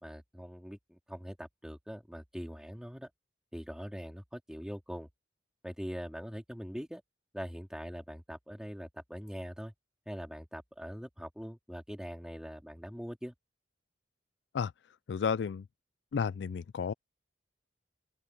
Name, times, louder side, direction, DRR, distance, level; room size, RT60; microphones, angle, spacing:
voice 1, 0.0-3.1 3.5-5.1 5.6-7.0 7.3-9.7 10.0-13.3, equal, 5° right, 3.3 m, -42 dB
voice 2, 15.1-15.6 16.1-16.9, left 6 dB, 65° left, 0.3 m, -32 dB
open air
head